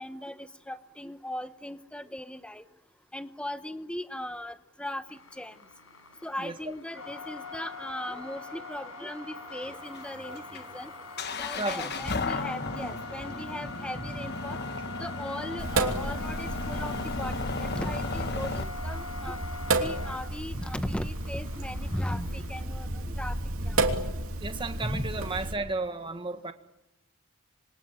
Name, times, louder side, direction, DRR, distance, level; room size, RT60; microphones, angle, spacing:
voice 1, 0.0-2.6 3.1-5.6 6.2-10.9 11.4-14.6 15.0-19.4 19.7-23.4 23.6-23.8 24.8-25.1, left 1 dB, 5° left, 11 dB, 0.9 m, -38 dB
sound 1, 5.1-22.6, left 2 dB, 65° left, 6.8 m, -43 dB
sound 2, 9.5-18.6, left 3 dB, 50° left, 1.2 m, -35 dB
voice 2, 11.5-12.1 24.4-26.5, right 3 dB, 25° right, 8 dB, 1.6 m, -33 dB
Sink (filling or washing), 15.6-25.5, right 2 dB, 70° right, 3.0 m, -32 dB
26.5 x 24.0 x 8.9 m, 0.91 s
head